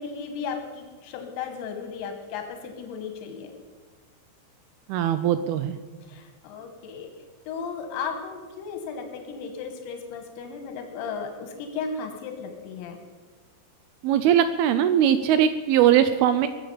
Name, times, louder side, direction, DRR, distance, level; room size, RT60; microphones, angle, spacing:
voice 1, 0.0-3.5 6.1-7.1 7.5-13.0, left 5 dB, 90° left, 5 dB, 3.6 m, -35 dB
voice 2, 4.9-5.8 14.0-16.5, right 10 dB, 85° right, 11 dB, 2.2 m, -20 dB
21.0 x 7.6 x 7.0 m, 1.4 s
omnidirectional pair, 5.1 m